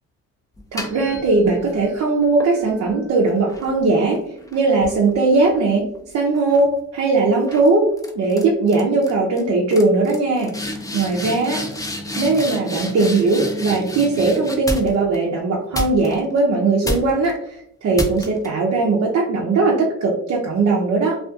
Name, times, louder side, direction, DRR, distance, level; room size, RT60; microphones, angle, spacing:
sound 1, 0.5-1.8 2.4-6.0 6.3-6.7 7.5-7.7 8.0-8.4 8.7-9.1 9.4-9.5 9.7-15.2 15.7-16.4 16.8-17.3 17.9-18.5, left 1 dB, 10° left, 0.5 m, -30 dB
voice 1, 0.7-4.2 4.5-5.9 6.1-7.9 8.2-10.5 10.9-11.6 12.2-17.6 17.8-21.2, right 3 dB, 55° right, -2 dB, 0.6 m, -19 dB
2.5 x 2.4 x 2.4 m, 0.76 s
cardioid pair, 90°, 30 cm